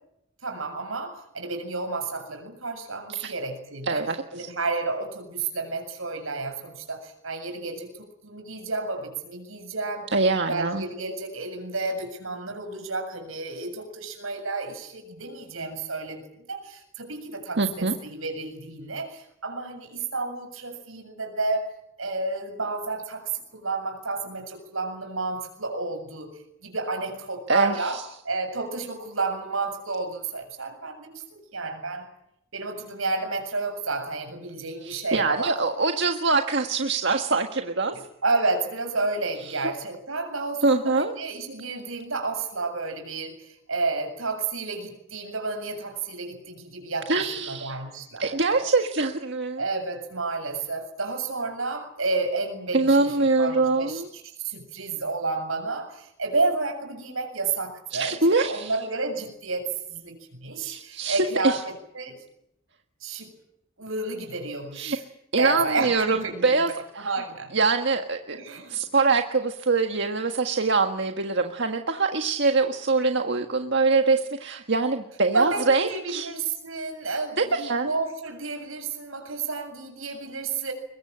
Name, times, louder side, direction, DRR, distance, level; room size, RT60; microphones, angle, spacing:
voice 1, 0.4-10.1 10.5-16.2 16.5-26.3 26.6-28.0 28.2-32.1 32.5-35.6 37.9-48.7 49.6-54.0 54.4-62.2 63.0-63.3 63.8-65.0 65.4-67.5 68.3-68.8 75.3-80.7, right 3 dB, 80° right, 6 dB, 7.4 m, -31 dB
voice 2, 3.9-4.5 10.1-10.8 17.6-17.9 27.5-28.0 34.8-37.9 40.6-41.1 47.1-47.7 48.2-49.6 52.7-54.1 57.9-58.7 60.6-61.6 64.7-65.0 65.3-67.1 67.5-68.4 68.7-76.3 77.4-77.9, right 3 dB, 55° right, 5 dB, 1.6 m, -24 dB
23.0 x 22.5 x 8.8 m, 0.78 s
head